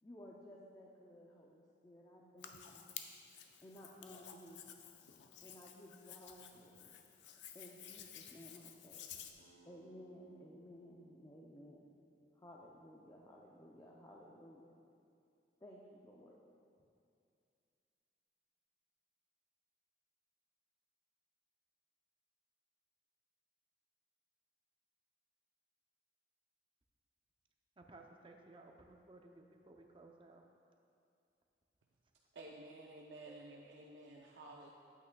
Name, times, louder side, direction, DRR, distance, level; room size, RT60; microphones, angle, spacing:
voice 1, 0.0-2.9 3.6-4.7 5.4-7.0 7.5-9.1 9.7-11.8 12.3-14.8 15.6-16.4, equal, 20° left, 0.4 m, -56 dB
Hands, 2.4-9.3, left 9 dB, 90° left, 0.5 m, -53 dB
sound 1, 9.4-14.8, right 2 dB, 65° left, 1.4 m, -70 dB
voice 2, 27.8-30.4 33.3-33.4, right 2 dB, 30° right, 0.5 m, -58 dB
voice 3, 32.3-34.7, right 2 dB, 90° right, 0.5 m, -53 dB
8.7 x 8.2 x 2.2 m
head